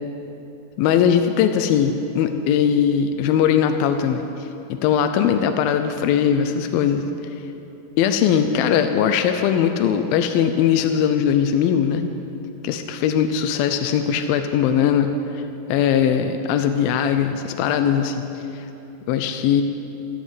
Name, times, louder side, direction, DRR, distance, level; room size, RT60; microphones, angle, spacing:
voice 1, 0.8-7.1 8.0-12.1 12.6-15.4 15.7-18.7 19.1-19.6, left 8 dB, 85° left, 7 dB, 2.5 m, -20 dB
14.5 x 10.0 x 9.2 m, 3.0 s
omnidirectional pair, 4.1 m